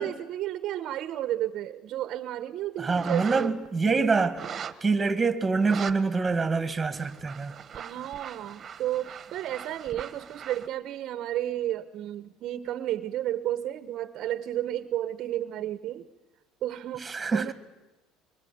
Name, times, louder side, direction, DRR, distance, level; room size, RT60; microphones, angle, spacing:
voice 1, 0.0-3.6 3.8-4.1 7.7-16.1 16.6-17.5, right 12 dB, 50° right, 1.0 m, -32 dB
voice 2, 2.8-4.4 4.8-7.5 17.0-17.5, right 4 dB, 15° right, 2.0 m, -25 dB
sound 1, 3.0-3.7 4.4-4.9 5.5-5.9 6.3-6.4 6.8-10.7, right 7 dB, 30° right, 1.4 m, -40 dB
24.0 x 23.5 x 9.5 m
cardioid pair, 140°, 0 cm